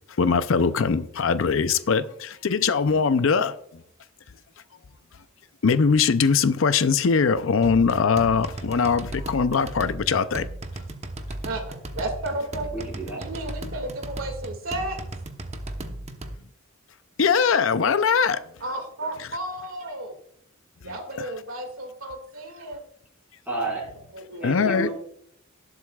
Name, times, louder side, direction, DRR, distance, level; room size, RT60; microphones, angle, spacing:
voice 1, 0.2-3.6 5.6-10.5 17.2-18.4 21.2-21.3 24.4-24.9, left 5 dB, 70° left, 0.5 m, -21 dB
sound 1, 7.6-16.4, right 1 dB, 30° right, 0.9 m, -36 dB
voice 2, 11.4-12.7 13.2-15.0 18.6-20.2 20.8-22.8 24.1-24.6, right 1 dB, 75° right, 2.1 m, -33 dB
voice 3, 12.7-13.2 23.4-23.9 24.4-24.9, right 2 dB, 10° right, 4.8 m, -30 dB
19.0 x 7.9 x 2.3 m
head